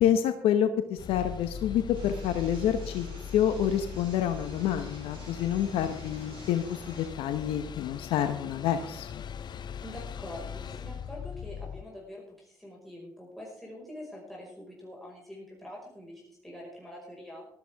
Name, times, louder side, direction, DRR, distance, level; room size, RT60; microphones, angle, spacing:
voice 1, 0.0-3.1 3.3-9.2, left 10 dB, 70° left, 9 dB, 0.9 m, -28 dB
sound 1, 1.0-11.8, left 8 dB, 45° left, 0.8 m, -40 dB
sound 2, 1.9-7.1, right 4 dB, 60° right, 4.8 m, -50 dB
voice 2, 9.8-17.5, left 1 dB, ahead, -4 dB, 5.1 m, -45 dB
15.0 x 13.0 x 3.5 m, 0.73 s
hypercardioid pair, 60°, 10 cm